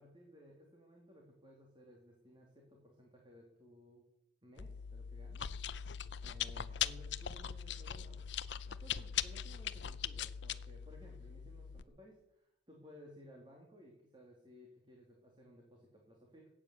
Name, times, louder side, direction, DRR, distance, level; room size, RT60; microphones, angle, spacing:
voice 1, 0.0-4.0 4.4-5.9 6.2-8.3 8.7-16.5, equal, 25° right, -1 dB, 2.8 m, -59 dB
Chewing mastication, 4.6-11.8, left 9 dB, 75° left, 0.6 m, -41 dB
15.0 x 8.8 x 8.1 m, 0.81 s
head